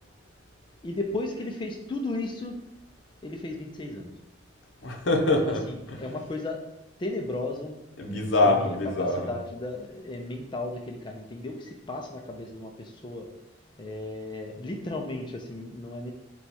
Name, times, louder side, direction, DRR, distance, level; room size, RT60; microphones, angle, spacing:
voice 1, 0.8-2.6 3.2-4.1 5.4-6.6 7.0-7.8 8.4-13.3 13.8-16.1, left 2 dB, 25° left, 2 dB, 0.4 m, -35 dB
voice 2, 4.8-5.6 8.0-9.2, left 2 dB, 85° left, 2 dB, 0.7 m, -24 dB
4.4 x 2.3 x 4.1 m, 0.87 s
head